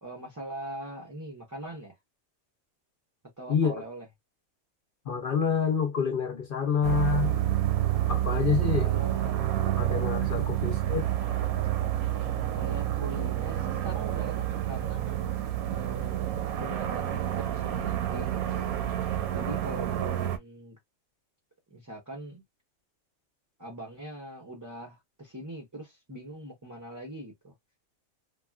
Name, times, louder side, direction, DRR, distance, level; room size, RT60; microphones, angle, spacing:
voice 1, 0.0-2.0 3.4-4.1 8.7-9.4 10.4-10.5 12.5-15.3 15.7-18.7 19.3-20.8 21.7-22.4 23.6-27.5, right 1 dB, 25° right, 0.4 m, -42 dB
voice 2, 3.5-3.8 5.1-7.3 8.1-8.9 9.6-11.1, left 6 dB, 55° left, 0.7 m, -28 dB
sound 1, 6.8-20.4, right 12 dB, 85° right, 1.1 m, -29 dB
3.5 x 2.3 x 2.2 m
omnidirectional pair, 1.5 m